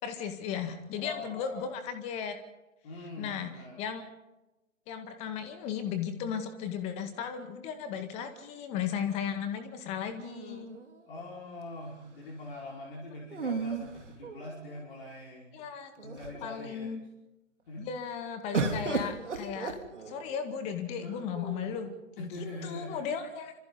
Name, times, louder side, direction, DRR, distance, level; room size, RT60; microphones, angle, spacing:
voice 1, 0.0-2.4 3.2-3.5 3.8-4.0 4.9-10.8 15.5-17.0 17.8-19.8 20.1-23.5, left 7 dB, 15° left, 9 dB, 1.9 m, -36 dB
voice 2, 0.9-1.7 2.8-3.9 11.1-15.6 15.9-16.9 17.7-17.9 21.0-21.2 22.2-23.3, left 2 dB, 45° left, -4 dB, 5.7 m, -43 dB
sound 1, 10.2-11.3 13.3-14.8 15.6-15.7 16.0-16.6 18.5-20.4 21.3-22.0, right 4 dB, 60° right, 3.5 m, -35 dB
29.0 x 26.5 x 4.1 m, 0.99 s
figure-of-eight pair, 135°, 40 cm